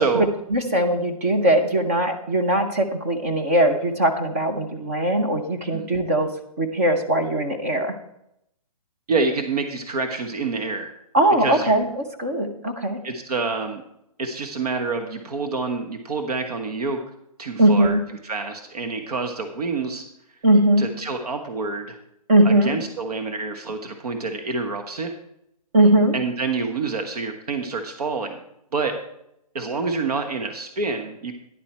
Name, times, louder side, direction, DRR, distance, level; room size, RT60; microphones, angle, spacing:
voice 1, 0.0-6.3 6.6-8.0 11.1-13.0 17.6-18.0 20.4-20.9 22.3-22.7 25.7-26.1, right 1 dB, 25° right, 5 dB, 0.6 m, -20 dB
voice 2, 9.1-10.9 11.4-11.7 13.0-13.8 14.2-17.0 17.4-18.0 18.2-20.0 20.8-22.0 22.4-25.1 26.1-28.4 28.7-28.9 29.5-31.3, right 4 dB, 90° right, 6 dB, 1.2 m, -27 dB
10.5 x 7.4 x 4.4 m, 0.78 s
hypercardioid pair, 175°, 19 cm